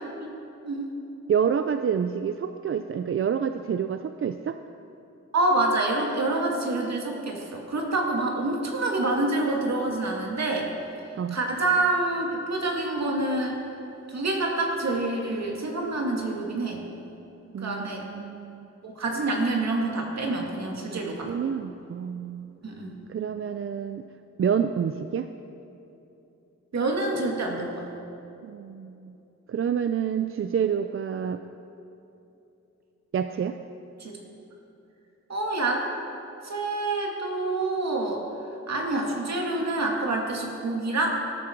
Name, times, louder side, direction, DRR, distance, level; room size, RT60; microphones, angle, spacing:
voice 1, 1.3-4.6 11.2-11.4 17.5-18.7 20.9-21.0 21.3-22.5 23.1-24.0 24.4-25.3 28.4-29.1 29.5-31.4 33.1-33.6, right 7 dB, 45° right, 9 dB, 0.4 m, -28 dB
voice 2, 5.3-10.7 11.3-13.6 14.1-16.8 17.6-18.1 18.8-21.3 22.6-22.9 26.7-27.9 34.0-34.2 35.3-35.9 36.4-38.2 38.7-41.1, right 2 dB, 65° right, 0 dB, 2.2 m, -27 dB
19.0 x 12.5 x 4.5 m, 2.9 s
wide cardioid pair, 180°, 29 cm